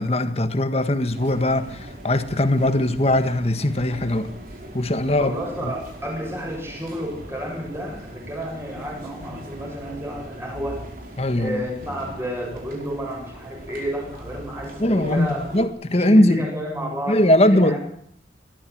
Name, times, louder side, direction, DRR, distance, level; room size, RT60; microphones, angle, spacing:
voice 1, 0.0-4.3 4.7-5.3 5.6-5.7 11.2-11.6 14.8-15.3 15.5-16.5 17.1-17.8, left 1 dB, 35° left, 9 dB, 1.6 m, -20 dB
sound 1, 1.1-15.7, equal, 55° right, 5.0 m, -39 dB
voice 2, 5.2-10.9 11.3-15.5 15.9-17.8, equal, 15° right, 0 dB, 7.2 m, -31 dB
20.5 x 13.5 x 9.4 m, 0.68 s
head